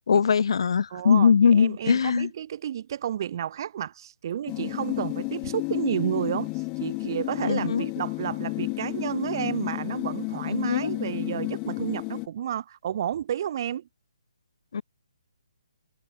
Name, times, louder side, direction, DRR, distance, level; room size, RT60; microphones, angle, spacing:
voice 1, 0.1-2.3 7.4-7.9 10.4-10.9 14.7-14.8, left 6 dB, 55° left, 1.1 m, -21 dB
voice 2, 0.9-13.9, right 10 dB, 40° right, 2.4 m, -31 dB
sound 1, 4.5-12.3, left 32 dB, 20° left, 3.1 m, -32 dB
figure-of-eight pair, 145°, 3 cm